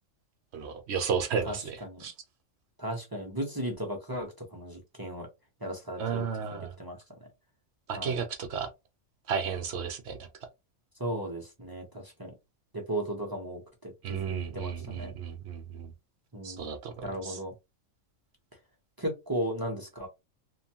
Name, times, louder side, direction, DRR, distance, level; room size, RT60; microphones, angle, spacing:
voice 1, 0.5-2.1 6.0-6.7 7.9-8.7 9.3-10.3 14.0-15.9 16.4-17.4, right 6 dB, 65° right, 0.7 m, -33 dB
voice 2, 1.5-2.0 2.8-5.3 5.6-6.2 6.5-7.0 7.9-8.2 11.0-12.3 12.7-15.1 16.3-16.6 17.0-17.5 19.0-20.1, right 1 dB, 25° right, 0.5 m, -36 dB
2.9 x 2.1 x 2.7 m
omnidirectional pair, 1.4 m